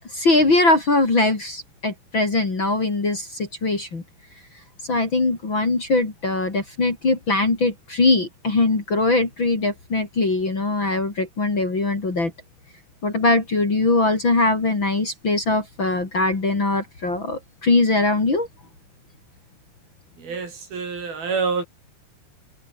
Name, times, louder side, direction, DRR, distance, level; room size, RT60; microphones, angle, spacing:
voice 1, 0.1-4.0 4.9-12.3 13.0-18.5, left 2 dB, 30° left, 4.1 m, -21 dB
voice 2, 20.2-21.6, right 5 dB, 60° right, 7.3 m, -27 dB
omnidirectional pair, 4.8 m